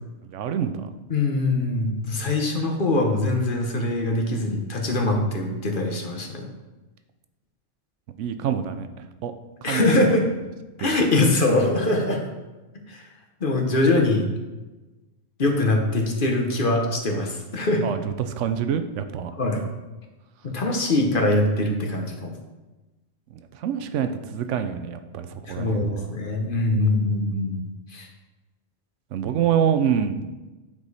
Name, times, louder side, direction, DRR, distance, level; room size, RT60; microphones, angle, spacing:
voice 1, 0.3-0.9 8.2-9.3 9.6-10.2 10.8-10.9 17.8-19.3 23.3-26.1 29.1-30.2, right 8 dB, 90° right, 9 dB, 0.9 m, -26 dB
voice 2, 1.1-6.4 9.6-10.3 10.8-12.2 12.9-13.1 13.4-14.2 15.4-17.8 19.4-19.6 20.4-22.3 25.5-27.6 27.9-28.1, left 2 dB, 50° left, 2 dB, 1.1 m, -23 dB
8.6 x 4.9 x 4.0 m, 1.1 s
omnidirectional pair, 1.2 m